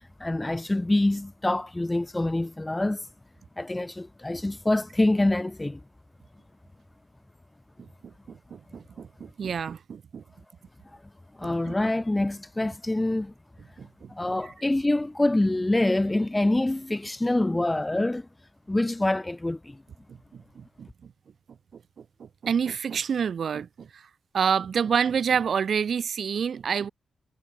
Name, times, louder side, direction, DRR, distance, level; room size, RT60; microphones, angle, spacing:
voice 1, 0.0-3.1 3.6-5.8 11.4-13.3 14.1-18.3 18.7-19.8, left 1 dB, 10° left, 2.3 m, -25 dB
voice 2, 7.8-10.2 11.4-11.7 13.8-14.1 20.1-21.1 21.7-24.1 24.3-26.9, right 7 dB, 55° right, 4.5 m, -29 dB
wide cardioid pair, 165°, 0 cm